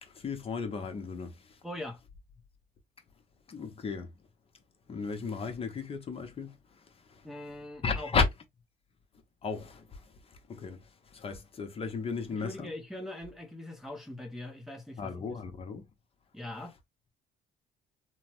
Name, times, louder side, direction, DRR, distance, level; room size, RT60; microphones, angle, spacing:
voice 1, 0.0-1.6 3.5-4.1 4.9-7.3 7.8-8.3 9.4-12.7 15.0-15.9, left 5 dB, 35° left, 0.8 m, -35 dB
voice 2, 1.6-2.0 7.2-8.1 12.3-15.4 16.3-16.7, left 1 dB, ahead, 0.7 m, -42 dB
3.1 x 2.1 x 2.9 m
cardioid pair, 110°, 17 cm